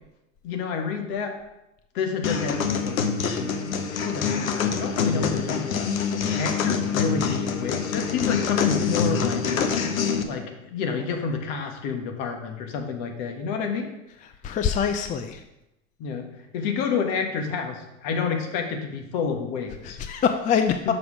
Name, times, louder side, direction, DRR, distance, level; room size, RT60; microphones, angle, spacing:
voice 1, 0.4-1.4 1.9-3.5 3.9-5.9 6.2-9.5 10.3-13.9 16.0-16.3 16.5-20.0 20.8-20.9, left 6 dB, 55° left, 4 dB, 1.6 m, -29 dB
sound 1, 2.2-10.2, left 6 dB, 90° left, 0.8 m, -25 dB
voice 2, 14.4-15.4 19.8-20.9, left 7 dB, 20° left, 7 dB, 0.4 m, -24 dB
6.7 x 5.5 x 4.9 m, 0.90 s
hypercardioid pair, 95°, 40 cm